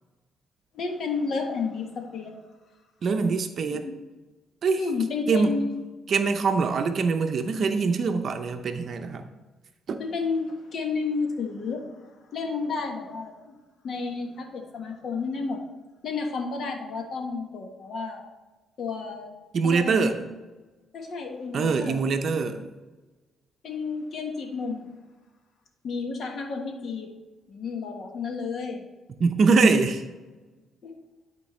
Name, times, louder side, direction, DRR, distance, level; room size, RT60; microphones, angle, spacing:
voice 1, 0.7-2.3 3.7-3.9 4.8-5.7 10.0-13.6 13.8-15.6 16.0-18.3 18.8-19.3 19.6-20.2 20.9-22.2 23.6-24.9 25.8-27.1 27.5-28.8 30.8-30.9, left 4 dB, 60° left, 3 dB, 1.3 m, -31 dB
voice 2, 3.0-3.8 4.6-4.8 5.3-5.6 6.1-9.3 9.9-10.0 19.5-20.2 21.5-22.7 29.2-30.0, right 4 dB, 55° right, 7 dB, 0.6 m, -23 dB
11.5 x 4.5 x 3.2 m, 1.2 s
cardioid pair, 90°, 0 cm